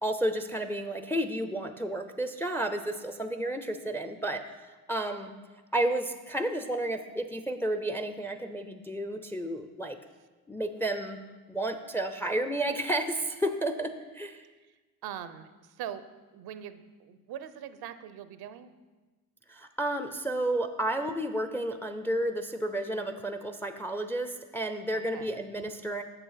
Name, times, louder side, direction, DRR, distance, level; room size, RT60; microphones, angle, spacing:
voice 1, 0.0-5.3 5.7-10.0 10.5-11.2 11.5-14.5 19.5-26.0, right 1 dB, 5° left, 8 dB, 0.5 m, -31 dB
voice 2, 14.6-16.0 16.3-18.7 24.9-25.4, right 10 dB, 80° right, 12 dB, 0.7 m, -42 dB
6.9 x 6.7 x 5.7 m, 1.3 s
cardioid pair, 90°, 38 cm